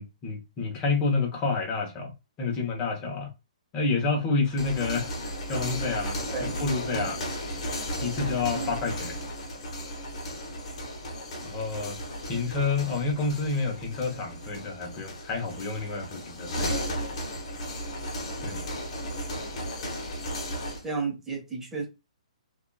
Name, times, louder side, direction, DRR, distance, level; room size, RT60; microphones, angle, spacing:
voice 1, 0.0-2.1 2.4-3.3 3.7-5.1 5.5-7.2 8.0-9.2 11.4-12.0 12.3-16.8 18.4-18.6, left 4 dB, 25° left, 0.9 m, -29 dB
sound 1, 4.4-20.9, equal, 55° left, 1.0 m, -35 dB
voice 2, 6.9-7.2 8.5-8.7 20.8-21.9, right 4 dB, 10° right, 0.9 m, -33 dB
2.7 x 2.4 x 2.3 m
hypercardioid pair, 140°, 4 cm